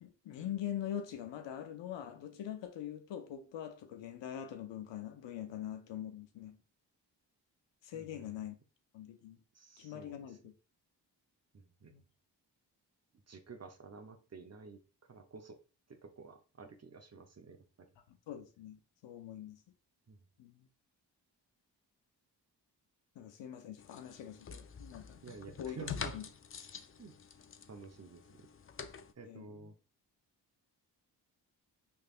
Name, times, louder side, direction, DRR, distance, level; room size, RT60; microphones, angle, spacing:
voice 1, 0.0-6.6 7.8-8.5 8.9-9.4 9.8-10.5 11.9-12.0 18.3-19.6 20.4-20.7 23.2-25.2 25.6-26.3 29.2-29.7, left 10 dB, 80° left, 0.6 m, -43 dB
voice 2, 7.9-8.3 9.5-10.1 11.5-11.9 13.3-14.8 15.1-15.6 15.9-17.9 20.1-20.2 25.2-26.1 27.0-27.1 27.7-28.2 29.2-29.7, right 4 dB, 35° right, 0.7 m, -51 dB
sound 1, 23.8-29.1, left 6 dB, 35° left, 0.4 m, -46 dB
3.3 x 3.2 x 2.4 m
cardioid pair, 45°, 43 cm